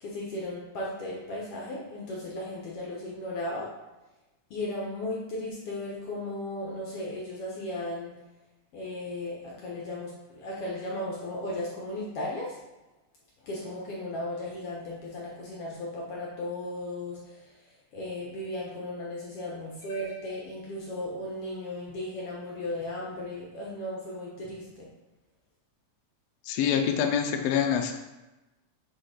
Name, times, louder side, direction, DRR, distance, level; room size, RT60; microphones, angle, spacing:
voice 1, 0.0-3.7 4.5-8.2 8.7-12.6 13.4-17.4 17.9-24.9, left 1 dB, 65° left, -4 dB, 1.7 m, -36 dB
voice 2, 26.4-27.9, left 8 dB, 90° left, 4 dB, 1.4 m, -25 dB
6.2 x 4.4 x 4.9 m, 1.1 s
omnidirectional pair, 3.5 m